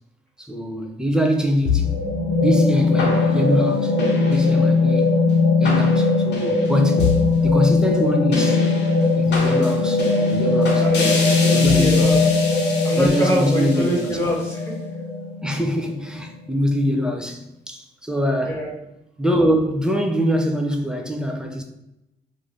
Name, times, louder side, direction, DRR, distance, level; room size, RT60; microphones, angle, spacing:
voice 1, 0.4-2.0 2.4-4.0 4.3-5.1 5.6-7.1 7.4-8.6 9.1-10.0 10.3-10.8 11.4-12.0 13.0-14.2 15.4-18.6 19.2-21.6, equal, 5° right, 0.4 m, -23 dB
sound 1, 1.7-16.1, left 3 dB, 60° left, 0.7 m, -19 dB
voice 2, 10.8-12.2 12.8-14.7 18.4-18.7, right 1 dB, 10° left, 1.1 m, -24 dB
2.6 x 2.5 x 3.2 m
cardioid pair, 90°, 20 cm